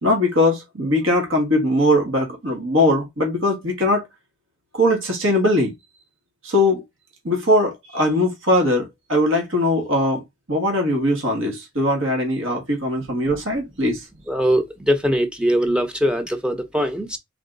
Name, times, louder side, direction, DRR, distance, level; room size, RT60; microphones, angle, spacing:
voice 1, 0.0-4.0 4.7-5.7 6.4-6.8 7.2-10.2 10.5-14.0, left 1 dB, 75° right, 1.8 m, -20 dB
voice 2, 14.3-17.2, equal, 5° right, 0.7 m, -21 dB
3.6 x 3.5 x 3.9 m
head